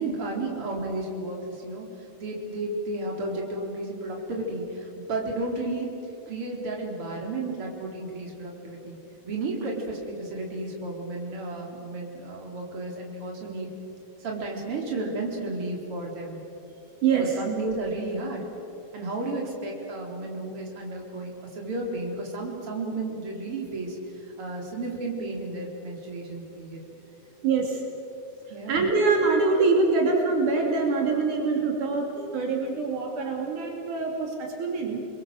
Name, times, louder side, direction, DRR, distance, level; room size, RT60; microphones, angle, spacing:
voice 1, 0.0-5.9 6.3-9.0 9.2-13.7 14.2-16.4 17.1-18.4 18.9-26.8 28.5-28.8, right 2 dB, 45° right, 0 dB, 4.7 m, -33 dB
voice 2, 17.0-17.4 27.4-27.8 28.7-35.1, right 4 dB, 75° right, 1 dB, 4.3 m, -24 dB
29.5 x 22.0 x 7.8 m, 2.8 s
omnidirectional pair, 3.6 m